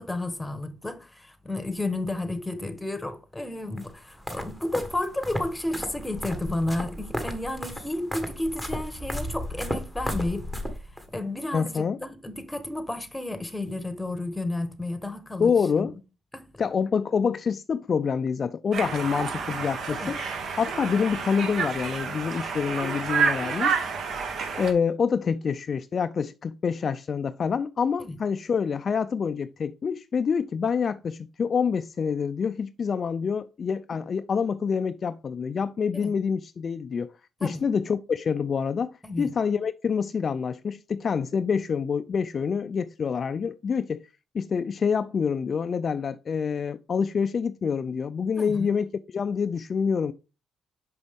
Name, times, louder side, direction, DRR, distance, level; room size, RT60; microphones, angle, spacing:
voice 1, 0.0-10.5 11.1-15.5 15.8-15.9 16.3-16.5 19.9-20.1 28.1-28.2 35.9-36.1 37.4-37.6 39.0-39.3 48.4-48.7, left 2 dB, 10° left, 1.1 m, -32 dB
sound 1, 3.8-11.1, equal, 10° right, 1.3 m, -34 dB
voice 2, 11.5-12.0 15.4-15.9 16.6-20.2 20.6-24.1 24.5-37.1 37.4-44.1 44.3-50.1, left 6 dB, 45° left, 0.3 m, -27 dB
Conversation, 18.7-24.7, right 5 dB, 65° right, 1.2 m, -29 dB
6.0 x 5.2 x 3.5 m
cardioid pair, 90°, 0 cm